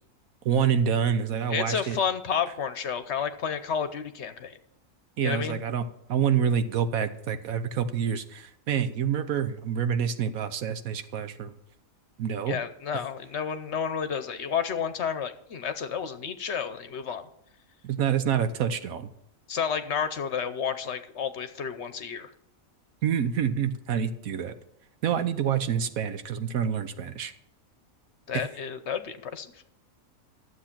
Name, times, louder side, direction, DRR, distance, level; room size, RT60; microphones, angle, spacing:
voice 1, 0.4-2.0 5.2-5.8 6.1-11.5 12.2-12.6 17.8-19.1 23.0-24.5 25.0-27.3 28.3-28.4, right 8 dB, 80° right, 10 dB, 1.3 m, -27 dB
voice 2, 1.5-4.6 5.2-5.6 12.4-17.2 19.5-22.3 28.3-29.5, left 7 dB, 60° left, 11 dB, 1.0 m, -31 dB
12.5 x 7.8 x 5.9 m, 0.76 s
omnidirectional pair, 1.4 m